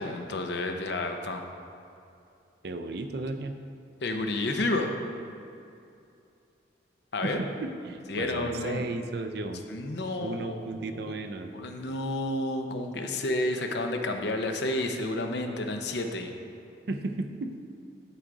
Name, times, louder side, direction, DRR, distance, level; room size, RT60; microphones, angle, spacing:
voice 1, 0.0-1.4 4.0-4.9 7.1-7.4 8.1-8.9 9.7-10.6 11.5-16.3, left 2 dB, 60° left, 4 dB, 0.7 m, -30 dB
voice 2, 2.6-3.6 7.2-9.6 10.2-11.5 16.9-17.6, right 2 dB, 55° right, 7 dB, 0.5 m, -34 dB
11.5 x 4.8 x 3.9 m, 2.6 s
head